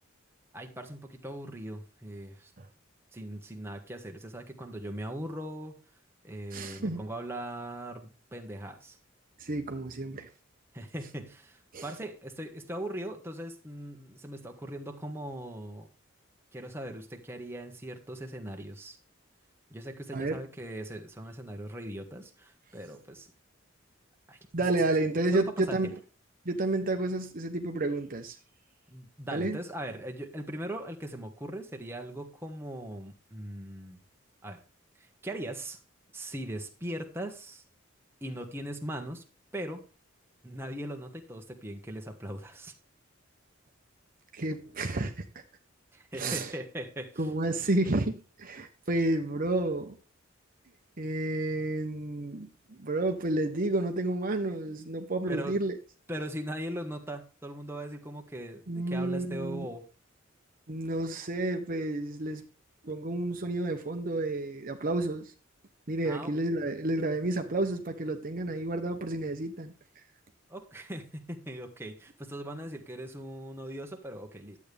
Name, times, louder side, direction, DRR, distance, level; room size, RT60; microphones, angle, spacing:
voice 1, 0.5-2.5 3.1-5.8 6.2-9.0 10.7-15.9 16.5-19.0 19.7-23.3 24.3-24.4 25.3-25.9 28.9-34.0 34.4-34.6 35.0-35.8 36.1-37.6 38.2-39.2 39.5-39.8 40.4-42.7 45.9-47.2 55.3-55.6 56.1-59.8 66.0-66.3 70.5-74.6, right 1 dB, 10° right, 1.4 m, -40 dB
voice 2, 6.5-7.0 9.4-10.3 11.7-11.9 20.1-20.4 24.5-26.0 26.4-28.4 29.3-29.6 44.3-45.2 46.1-46.5 47.2-50.0 51.0-55.8 58.7-59.6 60.7-62.5 62.8-65.3 65.9-69.7, right 2 dB, 45° right, 0.9 m, -30 dB
11.5 x 8.4 x 3.4 m
head